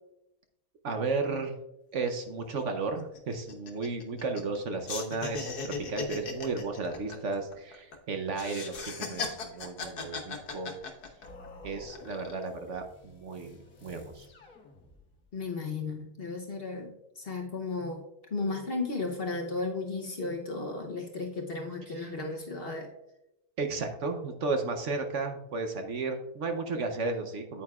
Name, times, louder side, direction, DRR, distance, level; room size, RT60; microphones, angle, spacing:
voice 1, 0.8-1.5 1.9-10.7 11.6-14.3 21.9-22.1 23.6-27.6, right 3 dB, 55° right, 5 dB, 1.0 m, -34 dB
sound 1, 2.1-2.2 2.4-2.6 3.0-4.6 4.9-8.0 8.3-11.5 11.9-12.5, left 4 dB, 85° left, 1.6 m, -38 dB
sound 2, 11.2-15.3, left 3 dB, 60° left, 1.5 m, -52 dB
voice 2, 15.3-18.0 18.3-22.9, left 3 dB, 45° left, 2 dB, 0.9 m, -34 dB
9.0 x 8.7 x 2.4 m, 0.86 s
omnidirectional pair, 1.6 m